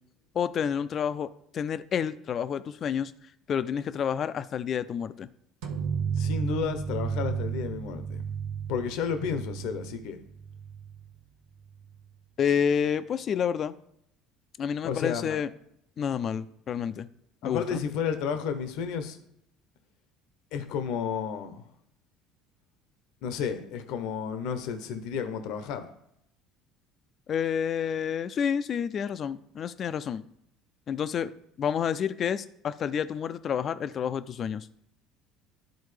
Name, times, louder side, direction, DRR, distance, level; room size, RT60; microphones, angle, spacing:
voice 1, 0.3-3.1 3.5-5.3 12.4-13.8 14.6-15.5 16.0-17.1 17.4-17.8 27.3-30.2 30.9-31.3 31.6-34.7, left 8 dB, 45° left, 13 dB, 0.5 m, -29 dB
sound 1, 5.6-11.1, right 7 dB, 75° right, 1.0 m, -33 dB
voice 2, 6.2-8.2 8.7-10.2 14.8-15.4 17.4-19.2 20.5-21.6 23.2-25.9, left 7 dB, 70° left, 8 dB, 0.8 m, -32 dB
11.5 x 4.0 x 3.3 m, 0.74 s
hypercardioid pair, 70°, 0 cm